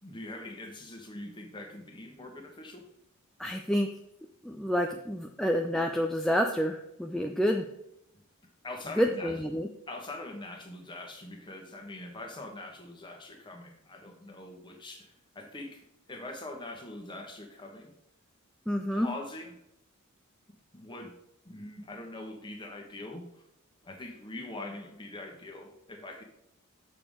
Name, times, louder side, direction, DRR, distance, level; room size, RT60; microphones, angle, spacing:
voice 1, 0.0-2.8 8.6-9.3 9.9-17.9 18.9-19.6 20.7-21.1 21.4-23.4 23.8-26.2, left 2 dB, 20° left, 2 dB, 1.3 m, -43 dB
voice 2, 3.4-3.9 4.4-7.7 9.0-9.7 18.7-19.1, equal, ahead, 3 dB, 0.4 m, -28 dB
7.1 x 6.8 x 3.6 m, 0.83 s
head